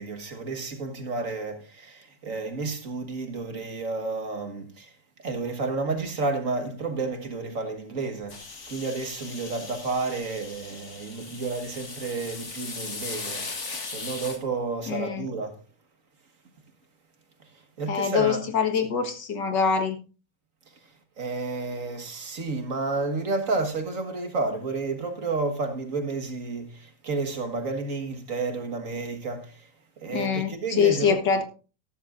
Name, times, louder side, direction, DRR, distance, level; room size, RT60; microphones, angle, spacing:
voice 1, 0.0-4.9 5.2-8.3 8.7-13.5 13.8-15.6 17.8-18.4 21.2-29.7 30.0-31.2, right 3 dB, 50° right, 1.8 m, -31 dB
sound 1, 8.3-14.4, left 4 dB, 40° left, 2.0 m, -38 dB
voice 2, 14.9-15.3 17.9-20.0 30.1-31.4, left 6 dB, 80° left, 2.1 m, -24 dB
13.5 x 12.5 x 2.5 m
omnidirectional pair, 1.9 m